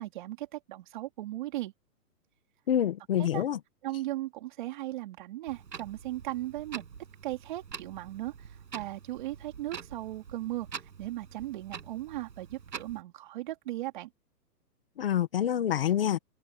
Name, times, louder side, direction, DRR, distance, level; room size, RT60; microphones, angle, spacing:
voice 1, 0.0-1.7 3.2-3.4 3.8-6.8 7.2-14.1, right 16 dB, 30° right, 3.5 m, -37 dB
voice 2, 2.7-3.6 15.0-16.2, left 10 dB, 35° left, 1.7 m, -27 dB
Clock, 5.5-13.0, right 6 dB, 85° right, 7.5 m, -46 dB
open air
hypercardioid pair, 175°, 49 cm